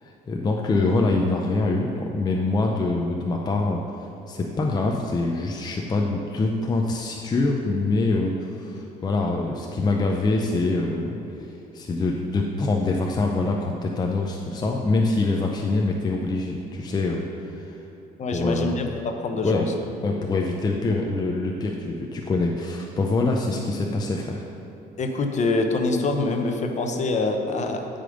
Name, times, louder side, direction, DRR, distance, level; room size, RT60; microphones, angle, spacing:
voice 1, 0.0-3.8 4.3-17.8 18.3-18.7 19.4-19.7 20.0-24.4, left 3 dB, 25° left, 0 dB, 0.6 m, -25 dB
voice 2, 18.2-19.7 25.0-27.9, left 3 dB, 45° left, 4 dB, 0.9 m, -25 dB
9.1 x 5.1 x 5.0 m, 2.9 s
cardioid pair, 110°, 17 cm